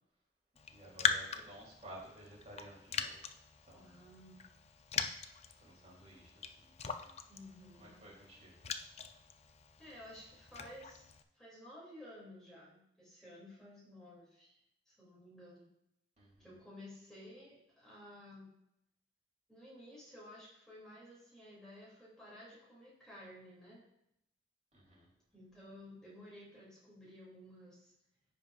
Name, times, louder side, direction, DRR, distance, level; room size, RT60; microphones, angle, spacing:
Raindrop, 0.6-11.2, left 6 dB, 35° left, 0.4 m, -41 dB
voice 1, 0.7-3.3 3.6-4.0 5.5-7.2 7.8-8.6 16.2-16.5 24.7-25.1, right 1 dB, 40° right, -5 dB, 3.2 m, -55 dB
voice 2, 3.7-4.4 7.3-8.0 9.8-11.0 11.3-14.6 14.9-15.7 16.4-18.5 19.5-23.8 25.3-27.9, left 1 dB, 5° left, -8 dB, 2.7 m, -54 dB
14.5 x 5.2 x 2.5 m, 0.81 s
head